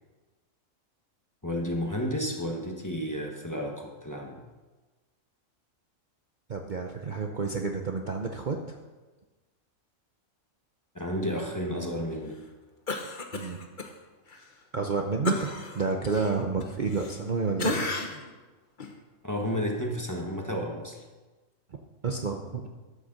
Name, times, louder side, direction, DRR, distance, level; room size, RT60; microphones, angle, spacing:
voice 1, 1.4-4.4 10.9-12.4 19.2-21.0, equal, 15° left, 1 dB, 1.3 m, -32 dB
voice 2, 6.5-8.8 13.3-13.6 14.7-15.5 15.7-17.8 22.0-22.7, right 4 dB, 40° right, 2 dB, 0.8 m, -30 dB
Cough, 12.9-13.9 14.3-14.4 15.2-17.3 17.6-18.3 18.8-18.9, left 3 dB, 40° left, 1.1 m, -33 dB
12.5 x 6.7 x 6.6 m, 1.2 s
omnidirectional pair, 1.4 m